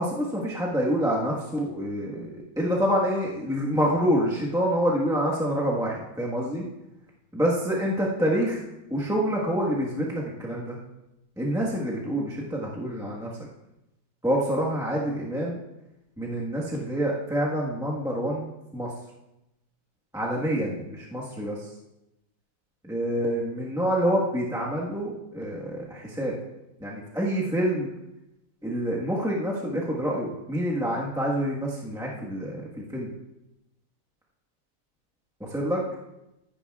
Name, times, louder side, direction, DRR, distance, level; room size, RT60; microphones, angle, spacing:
voice 1, 0.0-6.6 7.3-8.6 8.9-10.8 11.4-13.3 14.2-15.6 16.2-18.9 20.1-21.6 22.8-26.3 26.8-27.9 28.6-33.1 35.5-35.8, equal, ahead, -5 dB, 1.1 m, -27 dB
15.0 x 9.9 x 2.4 m, 0.91 s
omnidirectional pair, 2.0 m